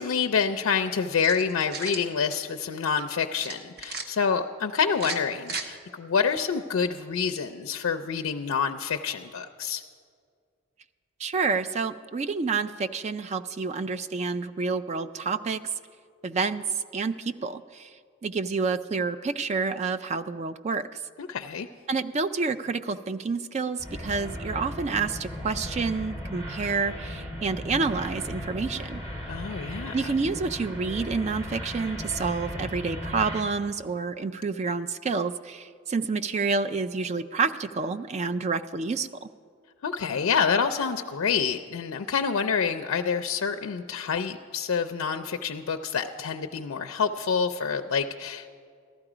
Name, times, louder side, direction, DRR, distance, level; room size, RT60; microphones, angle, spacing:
voice 1, 0.0-9.8 21.2-21.7 29.3-29.9 39.8-48.6, left 6 dB, 75° left, 6 dB, 0.4 m, -27 dB
sound 1, 1.2-2.1 3.4-4.1 4.9-5.7, right 4 dB, 45° right, 0.8 m, -35 dB
voice 2, 11.2-15.6 16.2-17.9 18.2-20.9 21.9-29.0 29.9-39.3, right 4 dB, 30° right, 11 dB, 0.3 m, -29 dB
sound 2, 23.8-33.4, equal, 15° right, 2.0 m, -36 dB
14.5 x 11.5 x 4.9 m, 2.1 s
head